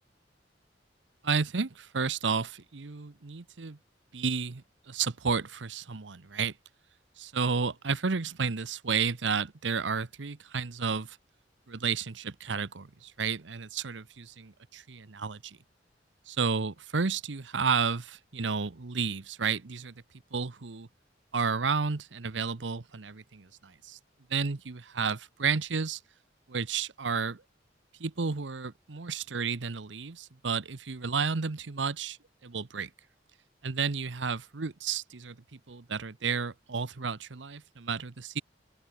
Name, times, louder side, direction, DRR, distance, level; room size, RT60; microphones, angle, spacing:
voice 1, 1.2-3.8 4.1-6.5 7.2-11.2 11.7-15.6 16.3-19.9 20.3-20.9 21.3-24.0 24.3-26.0 26.5-27.4 28.0-32.2 32.4-32.9 33.6-38.4, right 5 dB, 85° right, 0.9 m, -32 dB
open air
head